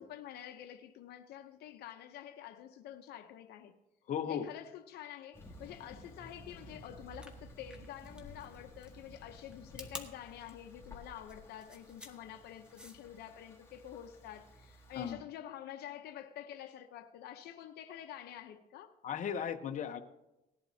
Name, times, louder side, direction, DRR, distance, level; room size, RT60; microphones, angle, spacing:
voice 1, 0.0-3.7 4.2-18.9, left 11 dB, 75° left, 0.8 m, -48 dB
voice 2, 4.1-4.5 15.0-15.2 19.0-20.0, left 8 dB, 50° left, 1.0 m, -36 dB
Thunder, 5.3-15.1, left 1 dB, 15° left, 2.6 m, -54 dB
sound 1, 7.0-13.2, equal, 5° right, 1.6 m, -51 dB
18.5 x 11.5 x 2.8 m
cardioid pair, 110°, 17 cm